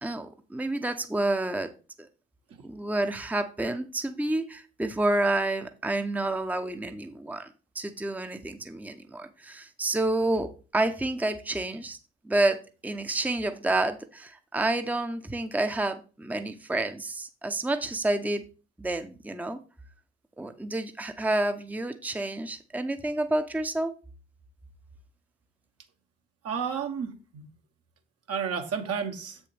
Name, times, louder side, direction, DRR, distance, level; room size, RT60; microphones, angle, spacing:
voice 1, 0.0-1.7 2.0-2.1 2.6-7.5 7.7-12.0 12.2-18.4 18.8-19.6 20.4-23.9, right 2 dB, 5° right, 8 dB, 0.8 m, -29 dB
voice 2, 26.4-27.5 28.3-29.4, right 6 dB, 55° right, 5 dB, 1.4 m, -32 dB
7.6 x 7.0 x 3.4 m, 0.34 s
hypercardioid pair, 40°, 29 cm